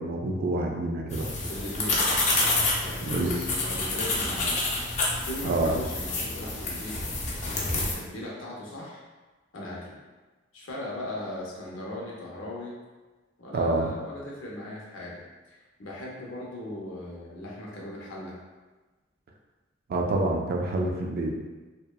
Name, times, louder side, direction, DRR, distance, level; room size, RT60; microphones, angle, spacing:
voice 1, 0.0-1.3 3.0-3.3 5.4-5.7 13.5-13.9 19.9-21.3, right 2 dB, 50° right, 1 dB, 0.3 m, -27 dB
sound 1, 1.1-7.9, left 2 dB, 35° left, 0.4 m, -28 dB
voice 2, 1.5-2.1 2.8-4.6 5.2-7.1 7.7-9.0 9.5-10.0 10.5-12.7 13.4-18.4, left 1 dB, 90° left, -4 dB, 0.7 m, -38 dB
2.7 x 2.1 x 2.2 m, 1.2 s
head